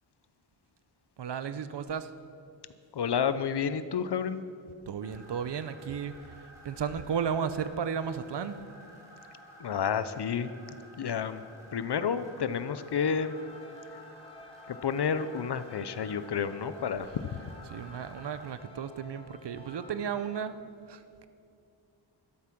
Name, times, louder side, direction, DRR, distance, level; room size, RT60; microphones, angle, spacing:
voice 1, 1.2-2.1 4.9-8.6 17.7-20.5 20.9-21.3, right 7 dB, 60° right, 12 dB, 0.7 m, -34 dB
voice 2, 2.9-4.4 9.6-10.5 11.0-11.4 11.7-13.3 14.7-17.1, left 7 dB, 60° left, 13 dB, 0.7 m, -30 dB
sound 1, 5.0-18.5, equal, 5° right, 3.2 m, -53 dB
sound 2, 13.0-20.5, left 3 dB, 10° left, 0.9 m, -52 dB
13.0 x 12.0 x 6.0 m, 2.5 s
wide cardioid pair, 160°, 47 cm